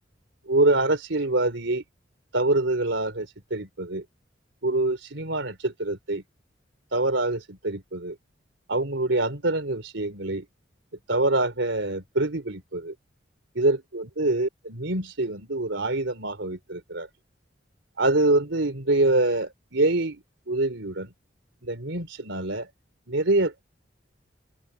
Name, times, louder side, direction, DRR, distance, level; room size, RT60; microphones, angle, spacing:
voice 1, 0.5-1.8 2.3-4.0 4.6-6.2 6.9-8.2 8.7-10.4 11.1-12.9 13.6-17.1 18.0-21.1 21.6-22.7 23.1-23.6, right 2 dB, 80° right, 3.3 m, -25 dB
open air
head